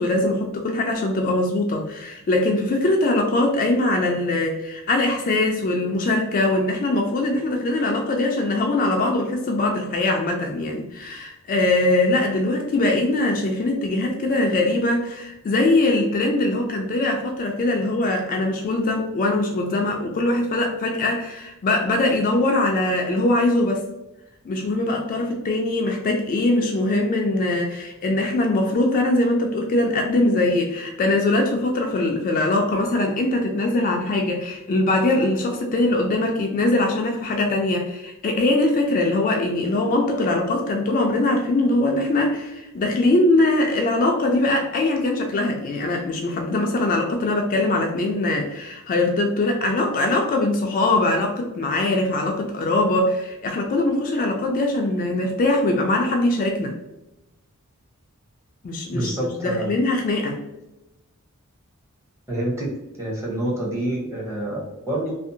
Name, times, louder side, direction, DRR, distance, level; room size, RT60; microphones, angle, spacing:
voice 1, 0.0-23.8 24.4-56.7 58.6-59.1 59.4-60.4, left 2 dB, 40° left, 2 dB, 0.3 m, -22 dB
voice 2, 58.9-59.8 62.3-62.7 63.0-65.1, right 1 dB, 15° right, -3 dB, 0.7 m, -27 dB
2.6 x 2.0 x 2.6 m, 0.94 s
head